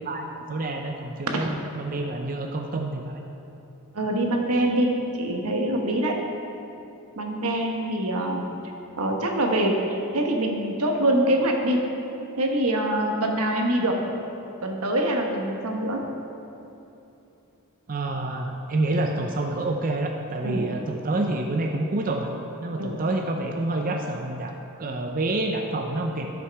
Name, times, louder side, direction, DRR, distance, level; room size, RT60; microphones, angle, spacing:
voice 1, 0.0-3.2 17.9-22.3 22.6-24.5 24.8-26.3, right 2 dB, 40° right, 3 dB, 0.5 m, -28 dB
voice 2, 3.9-6.2 7.2-8.5 9.0-11.9 12.4-14.0 14.6-16.0 20.4-20.7 22.8-23.0, right 1 dB, 85° right, 2 dB, 1.2 m, -24 dB
11.0 x 6.3 x 4.6 m, 2.9 s
head